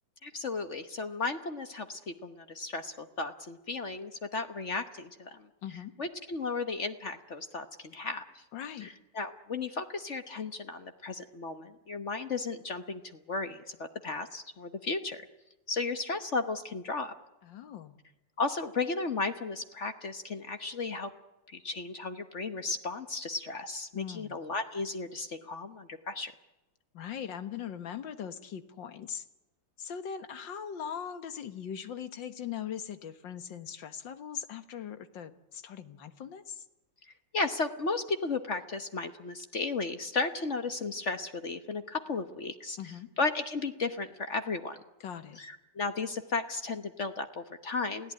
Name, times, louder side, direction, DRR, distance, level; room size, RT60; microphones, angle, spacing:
voice 1, 0.2-5.5 6.0-8.4 8.8-13.8 14.0-15.2 15.7-17.1 18.4-21.1 21.5-26.3 37.3-42.8 43.2-44.8 45.4-48.1, left 3 dB, 45° left, 8 dB, 1.3 m, -34 dB
voice 2, 5.6-5.9 8.5-8.9 17.4-18.0 23.9-24.4 26.9-29.2 29.8-36.7 42.8-43.1 45.0-45.4, left 8 dB, 85° left, 10 dB, 2.1 m, -40 dB
29.0 x 17.0 x 9.6 m, 1.0 s
omnidirectional pair, 2.0 m